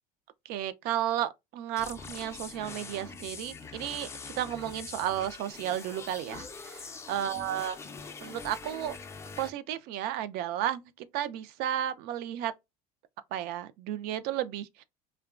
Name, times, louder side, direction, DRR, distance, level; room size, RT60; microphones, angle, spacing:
voice 1, 0.5-7.8 8.2-9.0 9.4-12.5 13.3-14.8, right 11 dB, 55° right, 0.4 m, -33 dB
sound 1, 1.8-9.5, left 5 dB, 15° left, 0.3 m, -44 dB
2.8 x 2.2 x 2.3 m
supercardioid pair, 130°, 19 cm